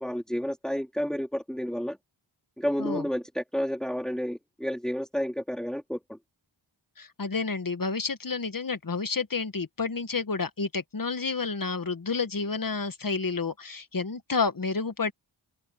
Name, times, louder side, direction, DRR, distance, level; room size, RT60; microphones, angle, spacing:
voice 1, 0.0-2.0 2.6-6.2, equal, ahead, 2.9 m, -31 dB
voice 2, 7.0-15.1, left 4 dB, 45° left, 1.6 m, -30 dB
open air
wide cardioid pair, 70°, 46 cm